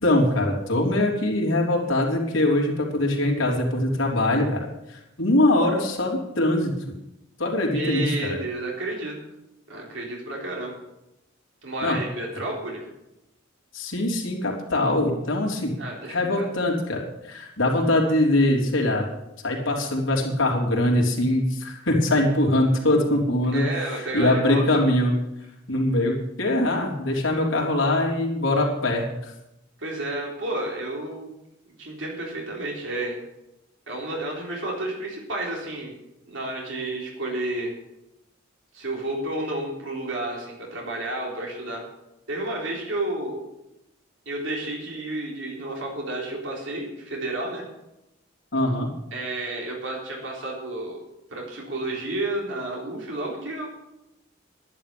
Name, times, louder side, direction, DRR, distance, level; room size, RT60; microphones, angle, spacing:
voice 1, 0.0-6.8 7.4-8.4 11.8-12.0 13.7-15.7 16.1-19.1 19.4-25.1 25.7-29.3 48.5-48.9, left 1 dB, 80° left, -1 dB, 3.5 m, -22 dB
voice 2, 7.7-9.2 9.7-10.8 11.6-12.9 15.8-16.5 23.5-24.8 29.8-31.3 31.8-33.2 33.9-35.9 36.2-37.7 38.7-41.8 42.3-43.4 44.3-47.6 49.1-51.0 51.3-53.7, right 2 dB, 65° right, -1 dB, 3.8 m, -31 dB
11.0 x 11.0 x 6.9 m, 0.88 s
head